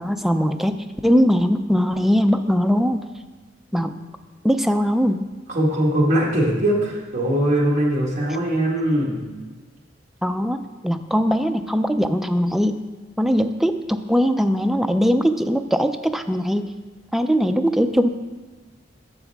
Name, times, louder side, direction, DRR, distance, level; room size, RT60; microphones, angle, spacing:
voice 1, 0.0-3.0 3.7-4.0 4.4-5.3 10.2-12.8 13.2-16.7 17.1-18.1, equal, ahead, 7 dB, 0.4 m, -20 dB
voice 2, 5.5-9.2, right 1 dB, 40° right, -3 dB, 1.6 m, -21 dB
11.5 x 7.1 x 3.5 m, 1.3 s
head